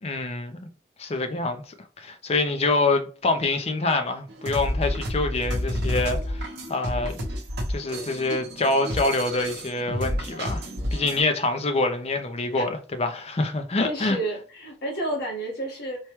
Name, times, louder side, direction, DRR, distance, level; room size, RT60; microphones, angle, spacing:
voice 1, 0.0-0.6 1.0-7.2 7.7-14.2, left 2 dB, 35° left, 0.5 m, -26 dB
sound 1, 4.3-11.2, equal, 60° right, 0.8 m, -30 dB
voice 2, 13.8-16.0, right 1 dB, 60° left, 1.5 m, -30 dB
4.5 x 2.2 x 3.1 m
head